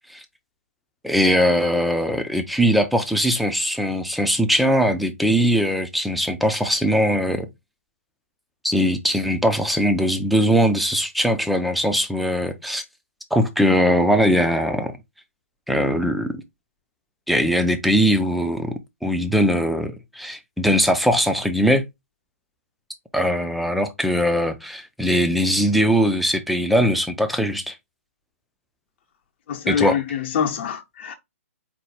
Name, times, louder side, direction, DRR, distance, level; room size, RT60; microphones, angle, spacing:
voice 1, 1.0-7.5 8.6-12.8 13.3-15.0 15.7-16.4 17.3-21.8 23.1-27.8 29.7-30.0, equal, ahead, 0.4 m, -20 dB
voice 2, 29.5-31.1, left 7 dB, 45° left, 0.9 m, -25 dB
4.4 x 2.2 x 4.2 m
hypercardioid pair, 150°, 8 cm